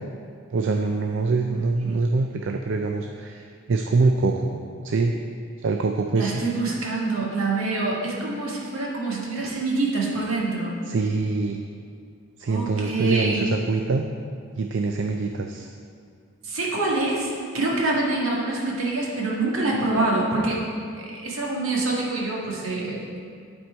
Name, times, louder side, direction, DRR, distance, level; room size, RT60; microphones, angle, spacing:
voice 1, 0.5-5.1 5.6-6.4 10.9-11.6 12.4-14.0 14.6-15.7, right 3 dB, 60° right, 4 dB, 0.4 m, -24 dB
voice 2, 6.2-10.8 12.4-13.5 16.4-20.6 21.0-23.2, right 2 dB, 80° right, -3 dB, 1.7 m, -26 dB
11.0 x 4.5 x 4.5 m, 2.3 s
head